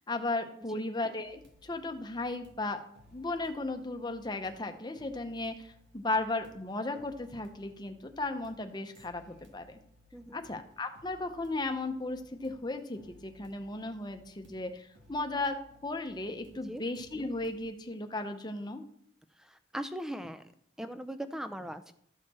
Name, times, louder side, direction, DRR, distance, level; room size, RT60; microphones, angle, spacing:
voice 1, 0.1-2.8 3.1-9.8 10.3-18.8, left 2 dB, 25° left, 6 dB, 0.8 m, -35 dB
sound 1, 1.2-17.6, left 2 dB, 90° right, 2.1 m, -61 dB
voice 2, 19.4-20.5 20.8-21.9, equal, 5° right, 10 dB, 0.4 m, -39 dB
13.0 x 6.5 x 4.3 m, 0.70 s
head